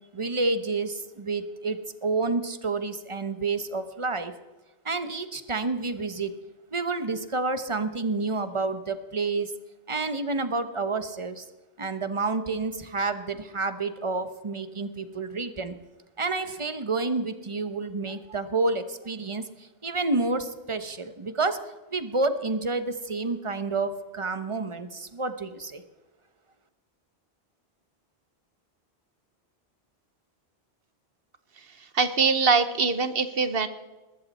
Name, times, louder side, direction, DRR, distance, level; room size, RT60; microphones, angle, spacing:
voice 1, 0.1-4.3 4.8-6.3 6.7-9.5 9.9-11.5 11.8-15.7 16.2-21.6 21.9-25.8, right 3 dB, 30° right, 10 dB, 1.0 m, -29 dB
voice 2, 31.8-33.7, right 5 dB, 65° right, 11 dB, 1.2 m, -23 dB
20.5 x 13.5 x 4.2 m, 1.1 s
omnidirectional pair, 1.1 m